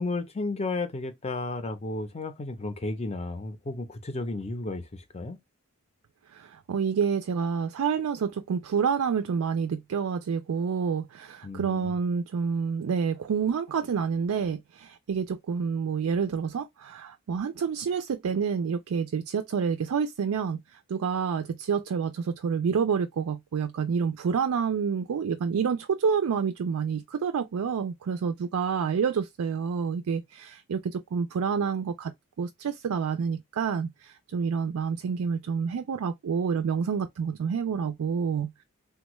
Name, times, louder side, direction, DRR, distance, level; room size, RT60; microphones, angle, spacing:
voice 1, 0.0-5.4 11.4-11.9, left 2 dB, 30° left, 0.5 m, -33 dB
voice 2, 6.3-32.1 32.4-38.6, right 6 dB, 80° right, 0.4 m, -28 dB
3.4 x 2.2 x 3.0 m
head